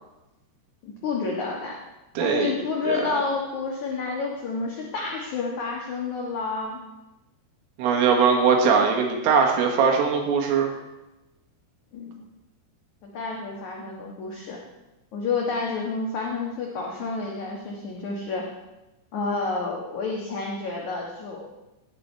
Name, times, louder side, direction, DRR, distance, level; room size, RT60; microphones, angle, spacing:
voice 1, 0.8-1.8 2.1-6.8 11.9-12.2 13.0-14.6 15.1-18.4 19.1-21.4, left 4 dB, 75° left, -1 dB, 1.7 m, -29 dB
voice 2, 2.2-2.5 2.9-3.0 7.8-10.7, right 6 dB, 85° right, 1 dB, 4.3 m, -20 dB
17.5 x 9.0 x 4.5 m, 1.0 s
omnidirectional pair, 5.7 m